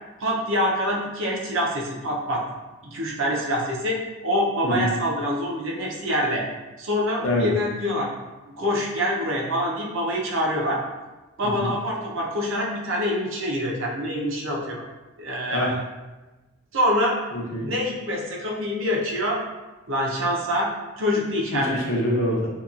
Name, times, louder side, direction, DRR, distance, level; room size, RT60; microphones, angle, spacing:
voice 1, 0.2-2.4 2.8-6.4 6.8-8.1 8.6-10.8 11.4-14.8 15.2-15.7 16.7-17.2 17.6-19.4 19.9-20.7 21.0-21.8, equal, 65° right, -2 dB, 0.6 m, -25 dB
voice 2, 17.3-17.7 21.5-22.5, left 1 dB, 70° left, -3 dB, 0.6 m, -25 dB
2.9 x 2.2 x 2.4 m, 1.1 s
head